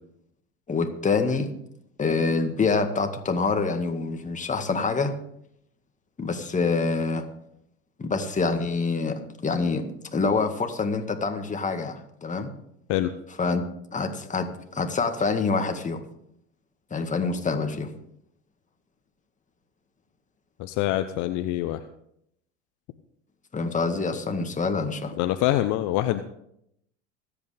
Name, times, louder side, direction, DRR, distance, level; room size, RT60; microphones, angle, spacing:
voice 1, 0.7-1.5 2.0-5.1 6.2-7.3 8.0-12.5 13.4-13.6 13.9-16.0 16.9-17.9 23.5-25.1, left 4 dB, 20° left, 5 dB, 1.9 m, -26 dB
voice 2, 20.6-21.8 25.2-26.2, left 14 dB, 55° left, 10 dB, 0.8 m, -25 dB
25.0 x 8.4 x 3.5 m, 0.74 s
hypercardioid pair, 80°, 35 cm